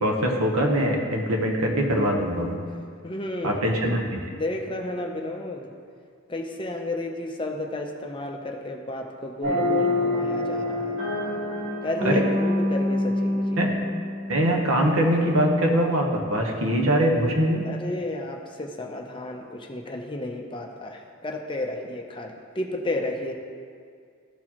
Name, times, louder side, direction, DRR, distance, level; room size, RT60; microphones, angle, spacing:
voice 1, 0.0-2.6 3.4-4.2 12.0-12.2 13.6-13.7 14.3-17.6, equal, 80° right, 1 dB, 1.1 m, -22 dB
voice 2, 3.0-3.7 4.2-5.7 6.3-11.0 11.8-13.7 17.4-23.3, left 1 dB, 25° left, 2 dB, 0.5 m, -32 dB
sound 1, 9.4-14.9, left 1 dB, 35° right, 1.3 m, -26 dB
13.5 x 4.6 x 2.9 m, 2.1 s
head